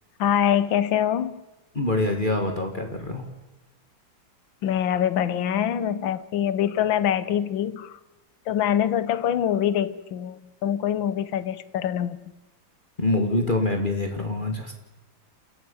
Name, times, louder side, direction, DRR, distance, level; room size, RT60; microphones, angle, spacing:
voice 1, 0.2-1.4 4.6-7.9 8.5-12.2, left 10 dB, 80° left, 1.7 m, -24 dB
voice 2, 1.7-3.2 13.0-14.7, left 2 dB, 25° left, 2.1 m, -25 dB
29.0 x 15.5 x 7.1 m
omnidirectional pair, 2.1 m